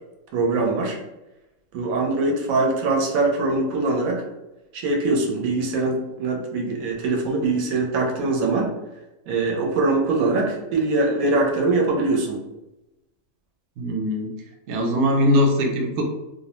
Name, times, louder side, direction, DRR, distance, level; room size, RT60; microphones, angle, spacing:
voice 1, 0.3-1.0 1.7-4.2 4.7-8.8 9.3-12.4, right 3 dB, 90° right, 0 dB, 1.1 m, -22 dB
voice 2, 13.8-14.3 14.7-16.0, equal, 65° right, 2 dB, 0.8 m, -21 dB
2.5 x 2.0 x 2.9 m, 0.97 s
omnidirectional pair, 1.4 m